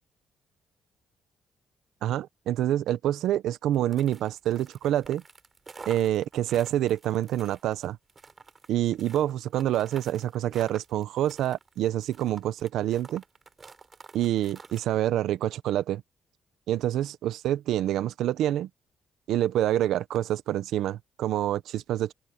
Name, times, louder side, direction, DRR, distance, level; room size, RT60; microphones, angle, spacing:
voice 1, 2.0-5.2 5.9-8.0 8.7-13.2 14.1-16.0 16.7-18.7 19.3-22.1, right 12 dB, 85° right, 1.0 m, -27 dB
sound 1, 3.7-14.8, right 4 dB, 35° right, 5.3 m, -49 dB
open air
cardioid pair, 90°, 0 cm